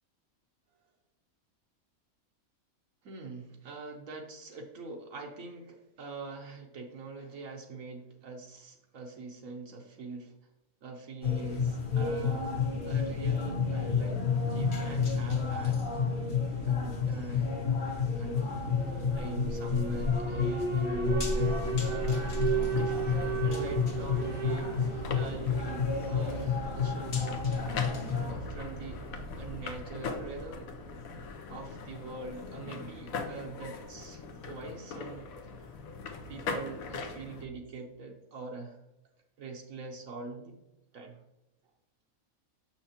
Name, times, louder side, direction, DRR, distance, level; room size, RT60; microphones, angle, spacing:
voice 1, 3.0-10.3 10.8-14.2 14.5-15.8 16.6-17.6 18.2-22.3 22.5-29.0 29.4-30.7 31.5-35.3 35.6-35.7 36.3-38.8 39.4-40.6 40.9-41.2, right 3 dB, 70° right, 1 dB, 1.2 m, -43 dB
sound 1, 11.2-28.3, left 6 dB, 45° left, 1.2 m, -30 dB
Alarm, 18.5-30.6, right 4 dB, 25° right, 0.8 m, -36 dB
sound 2, 21.6-37.5, left 3 dB, 75° left, 1.2 m, -41 dB
6.8 x 5.7 x 2.9 m, 0.97 s
omnidirectional pair, 1.5 m